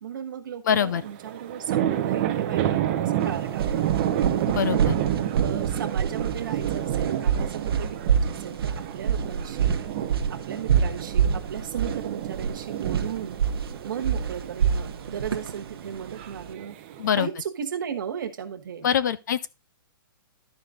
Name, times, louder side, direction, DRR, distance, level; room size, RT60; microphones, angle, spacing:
voice 1, 0.0-4.0 4.7-9.8 10.3-13.4 13.8-16.7 17.1-18.9, right 8 dB, 55° right, 1.5 m, -36 dB
voice 2, 0.6-1.0 4.5-4.9 17.0-17.3 18.8-19.5, left 8 dB, 50° left, 0.6 m, -24 dB
sound 1, 0.7-17.1, right 11 dB, 25° right, 0.7 m, -30 dB
sound 2, 3.3-16.5, right 7 dB, 75° right, 1.0 m, -27 dB
12.0 x 5.1 x 3.9 m
hypercardioid pair, 170°, 12 cm